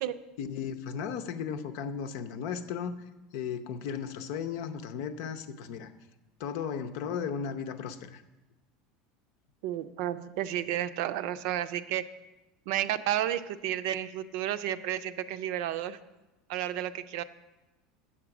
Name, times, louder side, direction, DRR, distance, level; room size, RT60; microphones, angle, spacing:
voice 1, 0.4-3.0 3.3-5.9 6.4-8.2, left 7 dB, 70° left, 8 dB, 0.7 m, -35 dB
voice 2, 9.6-12.1 12.7-16.0 16.5-17.2, right 12 dB, 70° right, 12 dB, 0.5 m, -32 dB
8.6 x 7.3 x 5.9 m, 1.1 s
supercardioid pair, 130°, 2 cm